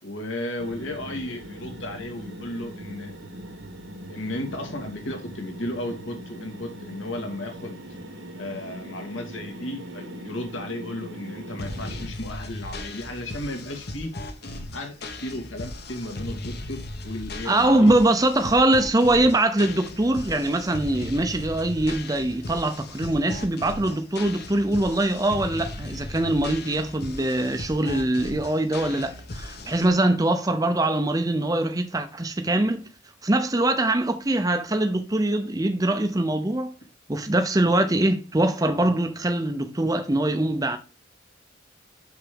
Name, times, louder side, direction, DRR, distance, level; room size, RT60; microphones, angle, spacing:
voice 1, 0.0-3.1 4.1-7.8 8.4-14.1 14.7-18.0, left 1 dB, 70° left, 2.2 m, -34 dB
sound 1, 0.6-12.1, equal, 65° right, 1.3 m, -40 dB
sound 2, 11.6-29.9, left 2 dB, 50° left, 1.3 m, -37 dB
voice 2, 17.5-32.8 33.2-36.7 37.1-40.8, right 1 dB, 20° right, 0.7 m, -23 dB
6.0 x 6.0 x 5.1 m
head